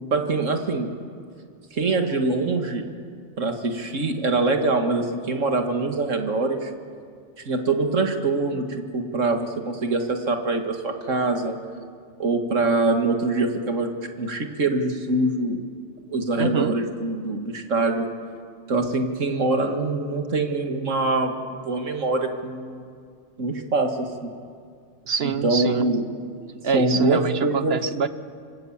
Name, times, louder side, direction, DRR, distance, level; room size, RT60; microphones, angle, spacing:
voice 1, 0.1-0.9 1.7-2.9 3.4-6.7 7.5-11.6 12.2-13.9 14.2-15.6 16.1-18.1 18.7-22.8 23.4-24.3 25.4-26.1 26.7-27.8, right 2 dB, 90° right, 5 dB, 2.3 m, -24 dB
voice 2, 16.4-16.7 25.1-25.8 26.6-28.1, right 6 dB, 55° right, 12 dB, 1.1 m, -25 dB
26.5 x 25.0 x 7.4 m, 2.2 s
omnidirectional pair, 1.3 m